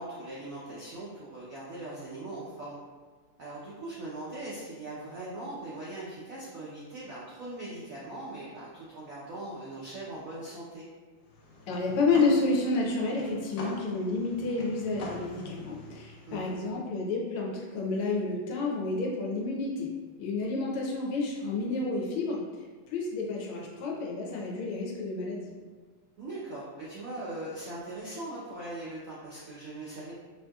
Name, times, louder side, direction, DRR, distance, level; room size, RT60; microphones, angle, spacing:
voice 1, 0.0-2.8 3.4-10.9 16.3-16.6 26.2-30.1, right 2 dB, 70° right, -7 dB, 0.8 m, -40 dB
sound 1, 11.2-16.7, left 2 dB, 65° left, 1.0 m, -45 dB
voice 2, 11.7-19.9 20.2-22.4 22.9-25.5, left 3 dB, 90° left, -1 dB, 1.6 m, -30 dB
5.4 x 2.7 x 2.3 m, 1.4 s
omnidirectional pair, 2.3 m